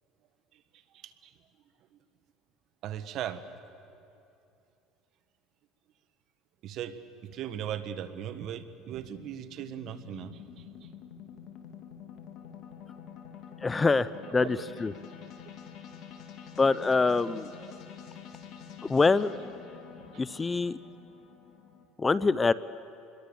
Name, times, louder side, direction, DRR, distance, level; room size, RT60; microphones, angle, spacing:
voice 1, 0.9-1.3 2.8-3.4 6.6-10.9 14.3-14.6 20.1-20.5, right 10 dB, 55° right, 12 dB, 1.4 m, -39 dB
sound 1, 8.4-21.9, left 8 dB, 60° left, 2.9 m, -48 dB
voice 2, 13.6-14.9 16.6-17.5 18.9-19.3 20.2-20.8 22.0-22.5, left 4 dB, 20° left, 17 dB, 0.5 m, -25 dB
26.5 x 21.5 x 7.1 m, 2.6 s
supercardioid pair, 105°, 0 cm